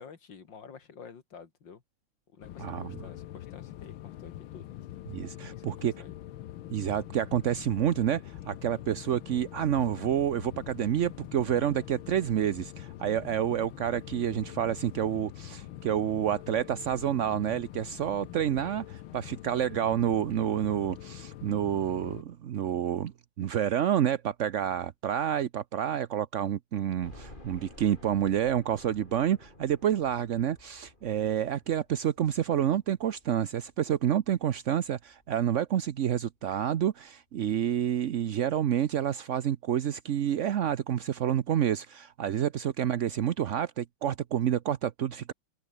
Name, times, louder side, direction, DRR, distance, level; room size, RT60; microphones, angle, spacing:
voice 1, 0.0-1.8 2.3-4.7 5.5-6.1, left 6 dB, 65° left, 2.9 m, -50 dB
sound 1, 2.4-22.2, left 13 dB, 85° left, 1.7 m, -44 dB
voice 2, 2.6-2.9 5.1-5.9 6.7-23.1 23.4-45.3, right 10 dB, 60° right, 0.7 m, -29 dB
sound 2, 27.0-35.9 36.4-36.5 36.9-37.0 38.2-38.3 38.5-38.6, left 2 dB, 25° left, 4.3 m, -53 dB
omnidirectional pair, 2.2 m